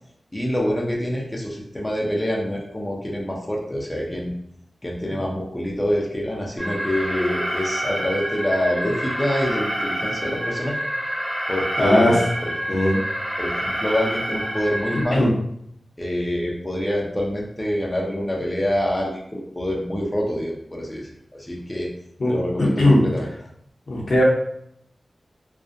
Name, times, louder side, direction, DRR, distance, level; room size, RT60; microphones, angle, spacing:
voice 1, 0.3-4.3 4.8-10.8 11.5-12.5 13.4-15.3 16.0-21.9 22.2-23.3, equal, 15° left, -3 dB, 0.5 m, -26 dB
Alarm, 6.6-15.1, equal, 15° right, 1.1 m, -28 dB
voice 2, 11.8-12.1 12.7-12.9 15.1-15.3 22.2-23.0 23.9-24.2, left 1 dB, 65° left, -3 dB, 0.6 m, -18 dB
2.5 x 2.1 x 2.4 m, 0.72 s
wide cardioid pair, 80°, 0 cm